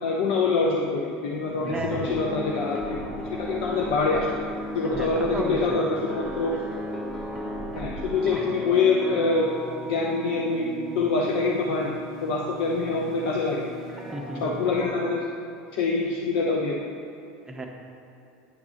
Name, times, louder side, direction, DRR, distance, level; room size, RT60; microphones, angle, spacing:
voice 1, 0.0-4.3 4.7-6.6 7.8-9.5 9.9-10.7 10.9-11.9 12.2-13.6 14.4-15.3 15.8-16.7, left 4 dB, 75° left, -1 dB, 0.8 m, -25 dB
sound 1, 1.5-14.9, right 1 dB, 5° left, 1.3 m, -35 dB
voice 2, 1.6-2.3 4.9-5.8 14.1-14.5 17.5-17.7, right 2 dB, 15° right, 1 dB, 0.6 m, -34 dB
9.6 x 3.7 x 6.3 m, 2.7 s
supercardioid pair, 135°, 5 cm